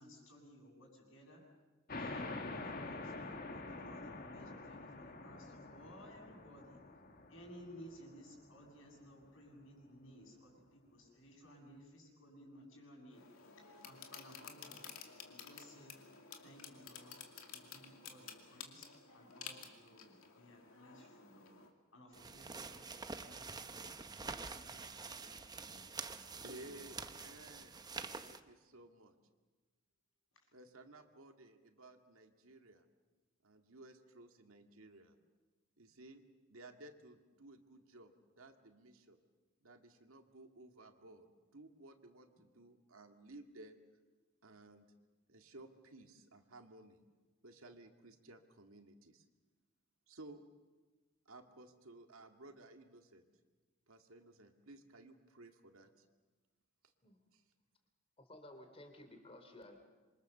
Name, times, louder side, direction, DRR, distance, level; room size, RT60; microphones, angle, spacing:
voice 1, 0.0-1.4 1.9-3.1 3.5-6.8 7.3-13.2 13.8-14.9 15.3-16.0 16.4-17.2 17.5-18.9 19.1-21.6 21.9-23.9 24.2-25.8 26.3-26.9, equal, 70° left, 1 dB, 7.3 m, -58 dB
sound 1, 1.9-9.1, left 2 dB, 45° left, 1.9 m, -47 dB
sound 2, 13.1-21.7, left 7 dB, 85° left, 2.5 m, -53 dB
sound 3, 22.1-28.4, right 4 dB, 20° right, 0.9 m, -47 dB
voice 2, 26.4-27.9 28.2-29.2 30.5-32.9 33.4-35.2 35.8-36.2 36.5-39.2 39.6-43.8 44.4-44.9 45.3-47.0 47.4-49.2 50.1-50.4 51.3-53.2 53.9-56.0 57.3-57.4, right 2 dB, 80° right, 5 dB, 2.1 m, -57 dB
voice 3, 58.2-59.8, left 1 dB, 30° left, 5 dB, 2.9 m, -55 dB
26.5 x 24.0 x 6.8 m, 1.3 s
head